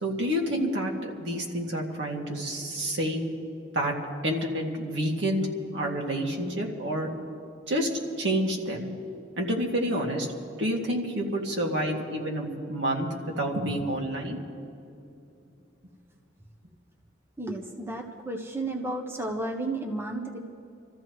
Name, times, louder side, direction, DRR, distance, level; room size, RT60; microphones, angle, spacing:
voice 1, 0.0-3.2 3.7-3.9 4.2-5.5 5.7-7.1 7.7-7.9 8.2-8.9 9.4-10.3 10.6-13.1 13.3-14.4, equal, 75° right, -1 dB, 2.1 m, -28 dB
voice 2, 17.4-20.5, right 2 dB, 15° right, 1 dB, 0.9 m, -33 dB
27.0 x 14.0 x 3.1 m, 2.7 s
head